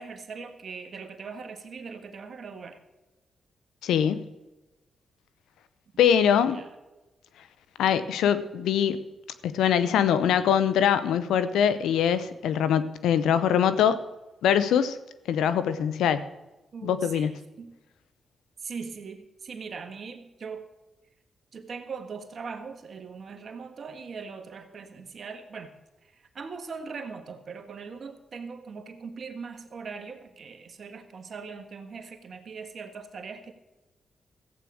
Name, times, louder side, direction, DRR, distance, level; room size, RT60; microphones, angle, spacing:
voice 1, 0.0-2.8 6.4-6.7 16.7-17.7 18.6-20.7 21.5-25.7 26.0-33.5, right 5 dB, 60° right, 1.6 m, -40 dB
voice 2, 3.8-4.3 6.0-6.6 7.8-9.0 9.4-14.0 14.4-15.0 15.3-16.2 16.8-17.3, left 8 dB, 85° left, 0.7 m, -23 dB
14.5 x 8.5 x 6.3 m
supercardioid pair, 50°, 0 cm